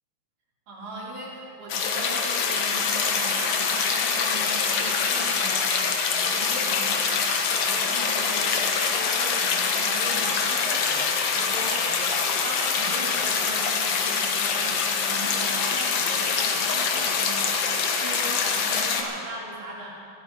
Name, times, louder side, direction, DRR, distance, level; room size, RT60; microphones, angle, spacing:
voice 1, 0.7-20.1, right 1 dB, 80° right, -5 dB, 4.6 m, -39 dB
sound 1, 1.7-19.0, left 5 dB, 60° left, 2.1 m, -25 dB
27.0 x 10.0 x 4.4 m, 2.6 s
omnidirectional pair, 3.7 m